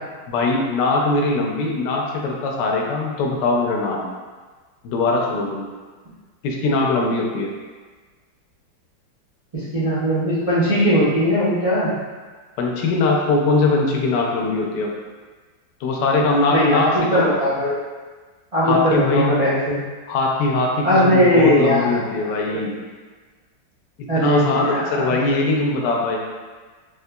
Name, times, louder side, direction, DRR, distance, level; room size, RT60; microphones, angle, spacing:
voice 1, 0.3-4.0 4.8-5.7 6.4-7.5 12.6-14.9 15.8-17.2 18.6-19.3 20.1-22.7 24.1-26.2, left 3 dB, 75° left, 0 dB, 1.1 m, -21 dB
voice 2, 9.5-11.9 16.5-17.8 18.5-19.8 20.8-22.6 24.1-25.1, equal, 60° right, -13 dB, 0.3 m, -19 dB
3.6 x 3.0 x 2.2 m, 1.4 s
omnidirectional pair, 2.0 m